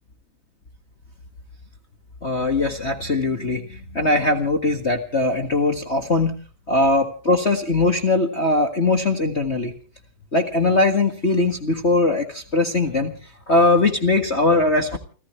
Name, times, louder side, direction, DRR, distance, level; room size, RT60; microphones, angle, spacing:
voice 1, 2.2-6.3 6.7-9.7 10.3-13.1 13.5-15.0, left 2 dB, 45° left, 2 dB, 0.9 m, -20 dB
30.0 x 14.0 x 3.2 m, 0.39 s
omnidirectional pair, 3.7 m